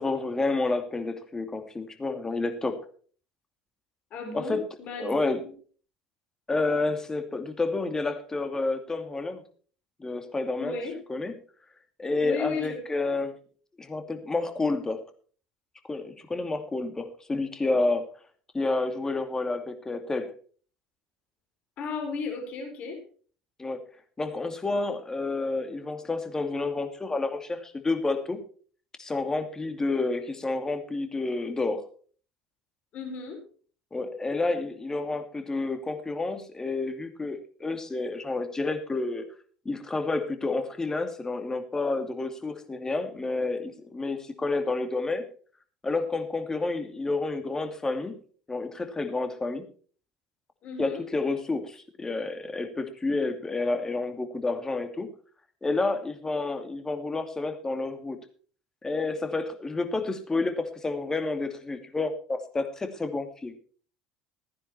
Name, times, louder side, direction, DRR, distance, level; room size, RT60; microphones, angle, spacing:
voice 1, 0.0-2.8 4.3-4.6 5.0-5.4 6.5-9.4 10.0-10.8 11.1-11.3 12.0-13.3 13.8-15.0 15.9-18.1 18.5-20.3 23.6-23.8 24.2-28.4 29.0-31.8 33.9-39.2 39.6-45.2 45.8-48.1 48.5-49.6 50.8-55.1 55.6-58.2 58.8-63.5, left 3 dB, 20° left, 7 dB, 2.5 m, -29 dB
voice 2, 4.1-5.5 10.6-11.0 12.2-12.8 21.8-23.0 32.9-33.4 50.6-51.0, left 4 dB, 50° left, 3 dB, 4.3 m, -34 dB
15.5 x 10.0 x 4.3 m, 0.42 s
hypercardioid pair, 70°, 3 cm